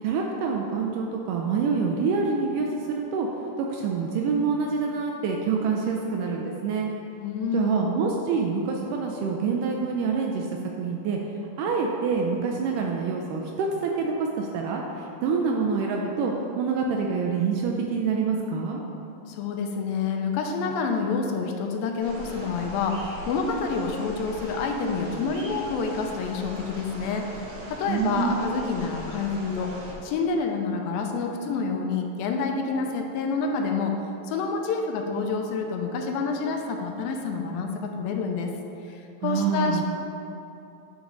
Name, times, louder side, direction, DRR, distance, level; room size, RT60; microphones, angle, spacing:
voice 1, 0.0-3.3 3.6-6.9 7.5-11.2 11.6-18.8 27.9-28.4 39.2-39.8, right 5 dB, 80° right, 1 dB, 1.9 m, -26 dB
voice 2, 7.2-7.9 19.3-29.7 30.0-33.9 34.3-38.5 38.9-39.8, left 4 dB, 85° left, 3 dB, 2.4 m, -28 dB
sound 1, 22.0-29.9, right 1 dB, 65° right, 2.0 m, -40 dB
9.3 x 4.6 x 3.8 m, 2.8 s
omnidirectional pair, 4.1 m